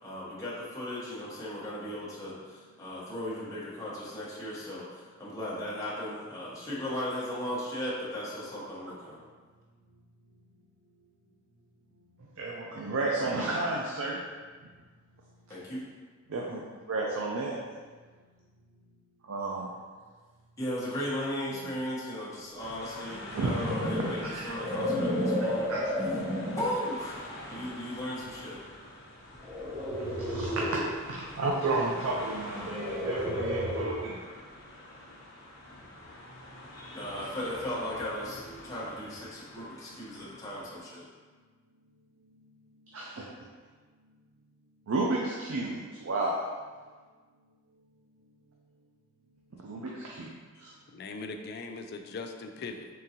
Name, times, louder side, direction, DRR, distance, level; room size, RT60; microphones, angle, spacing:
voice 1, 0.0-9.2 15.5-15.8 20.6-26.1 26.6-28.6 36.9-41.0, left 1 dB, 15° left, -9 dB, 0.9 m, -36 dB
voice 2, 12.4-14.2 16.3-16.6 16.9-17.6 19.2-19.7 23.3-23.5 24.0-24.4 25.7-25.8 30.1-34.2 42.9-43.3 44.9-46.5 49.6-50.3 50.6-50.7, right 2 dB, 85° right, -2 dB, 0.5 m, -32 dB
sound 1, 22.6-40.8, left 1 dB, 85° left, 0.8 m, -46 dB
sound 2, 23.1-26.7 27.4-27.6 29.4-30.9 32.6-34.1, equal, 25° right, 1.3 m, -32 dB
voice 3, 50.9-52.9, left 3 dB, 50° left, 5 dB, 0.3 m, -40 dB
3.8 x 3.6 x 2.8 m, 1.4 s
head